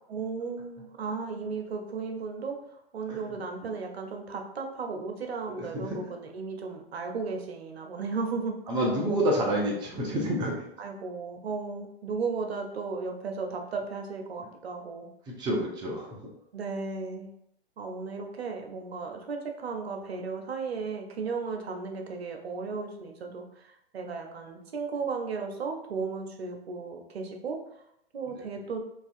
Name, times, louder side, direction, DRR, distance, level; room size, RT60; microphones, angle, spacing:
voice 1, 0.1-8.6 10.8-15.1 16.5-17.3 17.8-27.6 28.1-28.8, right 4 dB, 80° right, 3 dB, 0.6 m, -35 dB
voice 2, 5.6-6.0 8.7-10.5 15.3-16.2, right 1 dB, 15° right, -3 dB, 0.4 m, -28 dB
2.4 x 2.3 x 2.5 m, 0.77 s
figure-of-eight pair, 110°, 31 cm